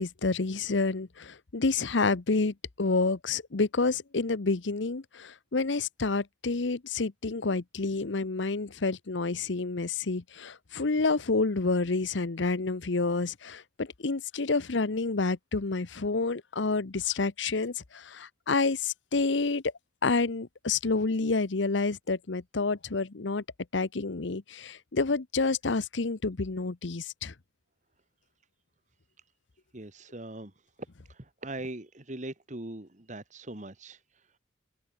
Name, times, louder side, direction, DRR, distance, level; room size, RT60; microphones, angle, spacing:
voice 1, 0.0-19.6 20.0-23.4 23.7-27.3, left 3 dB, 75° left, 0.9 m, -29 dB
voice 2, 29.7-30.5 31.1-34.3, right 2 dB, 40° right, 1.9 m, -41 dB
head